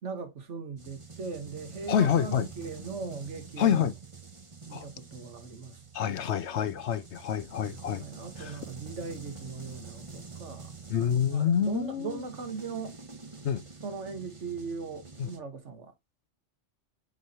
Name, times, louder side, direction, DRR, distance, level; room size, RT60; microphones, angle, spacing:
voice 1, 0.0-3.9 4.7-5.8 6.1-6.6 8.0-10.7 11.3-13.0 13.8-15.9, right 5 dB, 70° right, 1.7 m, -39 dB
sound 1, 0.8-15.4, right 4 dB, 25° right, 1.1 m, -47 dB
voice 2, 1.9-2.5 3.6-3.9 4.7-4.9 5.9-8.1 8.4-8.6 10.9-12.2 13.4-13.6 15.2-15.3, left 8 dB, 70° left, 1.0 m, -27 dB
8.1 x 4.7 x 2.8 m
omnidirectional pair, 1.3 m